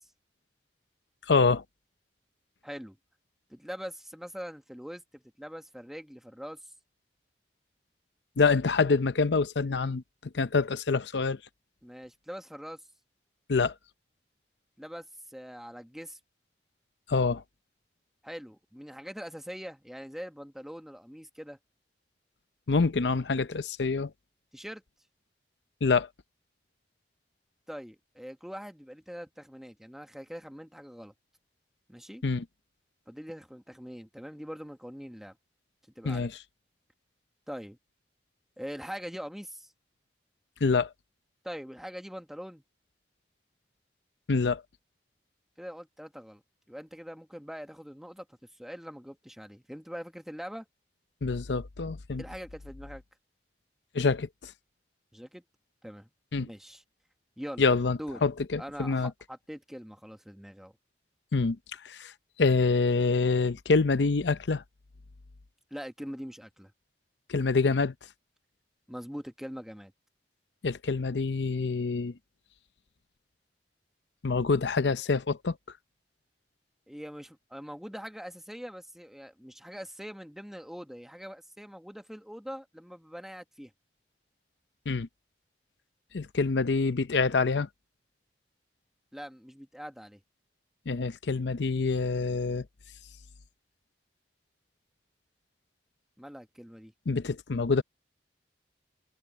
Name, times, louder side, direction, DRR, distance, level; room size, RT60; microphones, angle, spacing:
voice 1, 1.3-1.6 8.4-10.0 10.3-11.4 13.5-13.7 17.1-17.4 22.7-24.1 25.8-26.1 32.2-32.4 36.0-36.3 40.6-40.9 44.3-44.6 51.2-52.2 53.9-54.5 56.3-56.5 57.6-59.1 61.3-62.1 62.4-64.6 67.3-67.9 70.6-72.1 74.2-75.6 84.9-85.1 86.1-87.7 90.9-92.6 97.1-97.8, left 4 dB, 85° left, 0.7 m, -26 dB
voice 2, 2.6-3.0 3.5-6.7 11.8-12.8 14.8-16.2 18.2-21.6 24.5-24.8 27.7-31.1 31.9-32.2 33.1-35.4 35.9-36.3 37.5-37.8 38.6-39.7 41.4-42.6 45.6-46.4 46.7-50.7 52.2-53.0 55.1-55.4 55.8-56.1 56.4-56.8 57.4-57.7 58.0-58.3 58.6-60.7 65.7-66.7 68.9-69.9 76.9-83.7 89.1-90.2 96.2-96.9, equal, ahead, 1.3 m, -43 dB
head